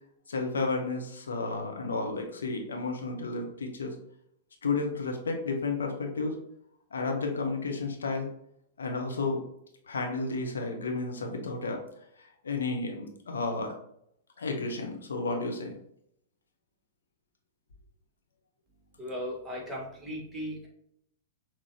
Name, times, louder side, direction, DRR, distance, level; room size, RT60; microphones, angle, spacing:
voice 1, 0.3-4.0 4.6-6.4 6.9-8.3 8.8-9.4 9.9-11.8 12.2-13.7 14.4-15.8, left 3 dB, 65° left, 3 dB, 0.9 m, -32 dB
voice 2, 19.0-20.7, equal, 5° right, -3 dB, 1.7 m, -37 dB
6.0 x 3.0 x 2.9 m, 0.73 s
figure-of-eight pair, 100°, 0 cm